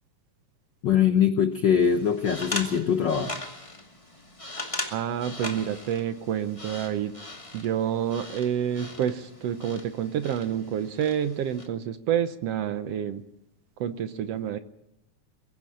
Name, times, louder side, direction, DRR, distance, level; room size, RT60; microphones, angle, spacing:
voice 1, 0.8-3.3, left 8 dB, 75° left, 9 dB, 1.0 m, -22 dB
sound 1, 1.8-11.7, left 2 dB, 10° left, 1.8 m, -39 dB
voice 2, 4.9-7.1 7.5-13.2 13.8-14.6, right 9 dB, 65° right, 11 dB, 1.7 m, -28 dB
23.0 x 15.5 x 7.6 m, 0.85 s
omnidirectional pair, 3.5 m